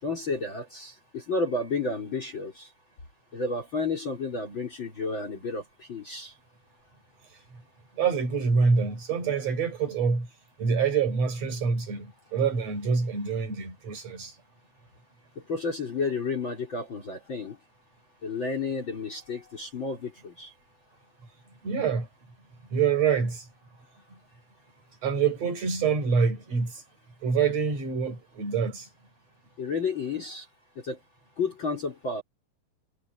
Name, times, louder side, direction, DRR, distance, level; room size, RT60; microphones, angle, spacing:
voice 1, 0.0-2.7 3.3-6.3 15.5-17.6 18.2-20.5 29.6-30.5 30.8-31.0 31.4-32.2, left 4 dB, 30° left, 4.8 m, -31 dB
voice 2, 7.9-10.3 10.6-14.4 21.6-22.1 22.7-23.5 24.1-24.2 25.0-26.8 27.2-28.9, right 5 dB, 45° right, 6.9 m, -26 dB
omnidirectional pair, 4.2 m